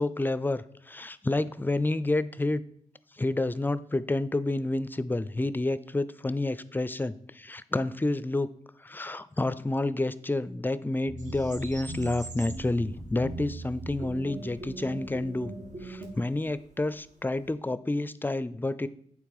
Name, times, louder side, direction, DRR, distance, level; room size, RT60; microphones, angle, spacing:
voice 1, 0.0-2.6 3.2-8.5 8.8-15.5 15.8-18.9, left 2 dB, 15° left, 15 dB, 0.4 m, -29 dB
sound 1, 11.0-16.1, right 2 dB, 75° right, 2.0 m, -40 dB
sound 2, 11.2-17.5, right 3 dB, 55° right, 0.9 m, -50 dB
8.4 x 3.4 x 4.8 m, 0.64 s
supercardioid pair, 40°, 15 cm